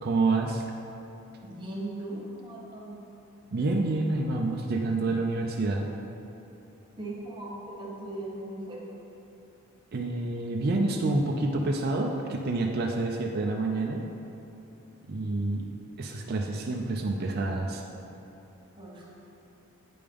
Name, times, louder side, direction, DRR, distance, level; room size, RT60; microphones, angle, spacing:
voice 1, 0.0-0.6 3.5-5.9 9.9-14.0 15.1-15.7 16.0-17.8, right 2 dB, 45° right, 1 dB, 0.4 m, -28 dB
voice 2, 1.4-3.1 7.0-8.9 18.8-19.1, right 1 dB, 20° right, -4 dB, 1.1 m, -38 dB
8.5 x 5.2 x 3.5 m, 2.9 s
head